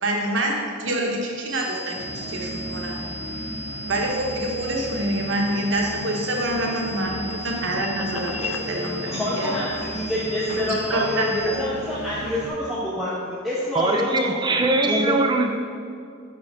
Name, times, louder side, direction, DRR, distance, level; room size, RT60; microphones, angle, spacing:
voice 1, 0.0-3.0 3.9-9.5 10.7-11.5, right 1 dB, 55° right, 0 dB, 0.9 m, -26 dB
sound 1, 1.5-11.5, equal, 90° right, 1.1 m, -36 dB
sound 2, 1.9-12.5, right 1 dB, 35° left, 1.1 m, -36 dB
sound 3, 6.0-8.7, left 6 dB, 75° left, 0.4 m, -36 dB
voice 2, 9.0-15.2, left 1 dB, ahead, -10 dB, 0.8 m, -27 dB
voice 3, 13.7-15.5, right 2 dB, 20° right, 4 dB, 0.3 m, -22 dB
5.5 x 4.3 x 4.8 m, 2.3 s
head